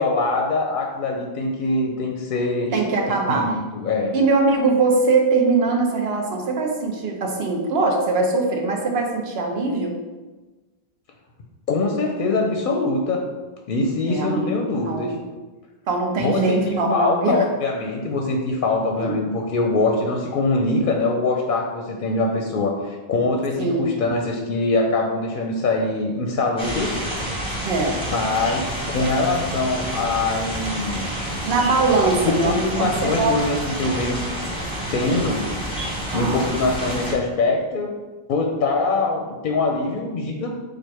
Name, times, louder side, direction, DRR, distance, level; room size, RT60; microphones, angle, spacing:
voice 1, 0.0-2.8 3.1-4.1 11.7-13.2 13.7-15.1 16.2-26.9 28.1-31.4 32.2-34.2 34.9-35.4 36.1-37.9 38.3-40.5, left 3 dB, 60° left, 2 dB, 0.7 m, -23 dB
voice 2, 2.7-3.5 4.1-9.9 14.0-14.6 14.8-15.2 15.9-17.4 19.0-19.2 23.6-23.9 27.6-28.0 31.5-33.4 36.1-36.4, right 3 dB, 75° right, 2 dB, 1.0 m, -21 dB
sound 1, 26.6-37.1, right 1 dB, 5° left, 0.7 m, -29 dB
4.4 x 2.5 x 4.6 m, 1.2 s
omnidirectional pair, 1.0 m